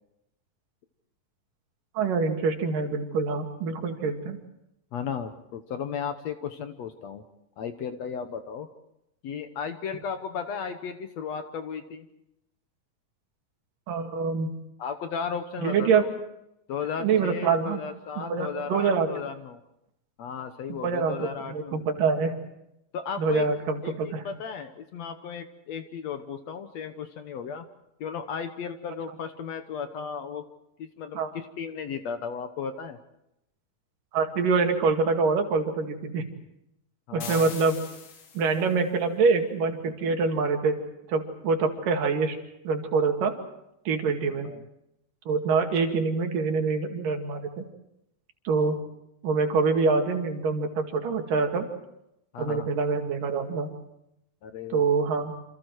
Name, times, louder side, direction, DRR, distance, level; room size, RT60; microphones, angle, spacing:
voice 1, 2.0-4.4 13.9-14.6 15.6-16.1 17.0-17.8 18.2-19.1 20.8-22.4 23.2-24.2 31.2-31.3 34.1-36.3 37.1-37.8 38.3-40.8 41.1-42.4 42.6-43.4 43.9-44.5 45.3-47.6 48.5-48.8 49.2-51.7 52.4-53.7 54.7-55.3, right 4 dB, 75° right, 4 dB, 3.8 m, -25 dB
voice 2, 4.9-7.2 7.6-8.7 9.2-12.1 14.8-16.1 16.7-19.6 20.2-21.9 22.9-23.5 23.8-27.7 28.0-30.4 30.8-33.0 37.1-37.5 44.4-44.6 52.3-52.7 54.4-54.9, left 6 dB, 65° left, 8 dB, 2.0 m, -35 dB
Artificial Cave Impulse Response, 37.2-38.7, left 5 dB, 45° left, 2.2 m, -41 dB
28.5 x 27.0 x 4.7 m, 0.82 s
omnidirectional pair, 3.9 m